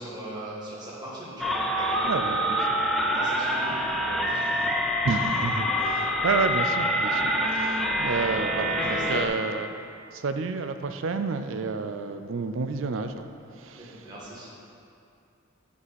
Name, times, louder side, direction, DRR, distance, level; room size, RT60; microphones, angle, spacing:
voice 1, 0.0-4.7 7.8-8.0 8.8-9.3 13.8-14.5, right 1 dB, 20° right, -7 dB, 1.8 m, -39 dB
sound 1, 1.4-9.3, equal, ahead, 0.5 m, -26 dB
voice 2, 2.0-2.8 5.0-9.7 10.1-13.3 13.5-14.0, right 4 dB, 75° right, 9 dB, 0.5 m, -30 dB
9.8 x 4.8 x 4.2 m, 2.5 s
head